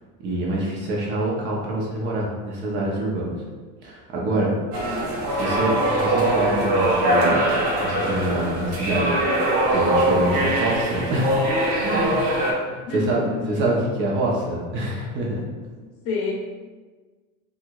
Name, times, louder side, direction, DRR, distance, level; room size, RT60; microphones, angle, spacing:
voice 1, 0.2-3.4 3.8-4.6 5.3-7.4 7.8-11.4 11.8-12.2 12.7-15.4, right 1 dB, 40° right, -3 dB, 0.8 m, -26 dB
sound 1, 4.7-12.5, right 1 dB, 70° right, 1.0 m, -22 dB
voice 2, 4.8-5.2 12.9-13.4 16.0-16.3, left 5 dB, 50° left, -2 dB, 0.9 m, -29 dB
4.7 x 2.5 x 2.4 m, 1.4 s
cardioid pair, 155°, 29 cm